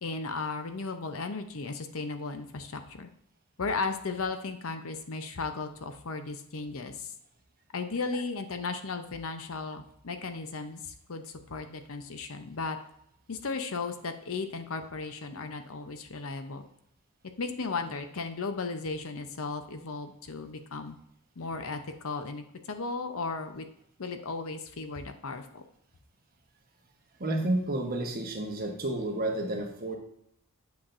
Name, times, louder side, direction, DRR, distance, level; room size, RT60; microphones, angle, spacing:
voice 1, 0.0-3.1 3.6-7.1 7.7-12.8 13.3-16.6 17.4-21.0 21.4-23.7 24.0-25.6, left 4 dB, 70° left, 7 dB, 0.7 m, -35 dB
voice 2, 27.2-30.0, right 1 dB, 40° right, 2 dB, 1.2 m, -30 dB
8.6 x 5.8 x 2.6 m, 0.73 s
head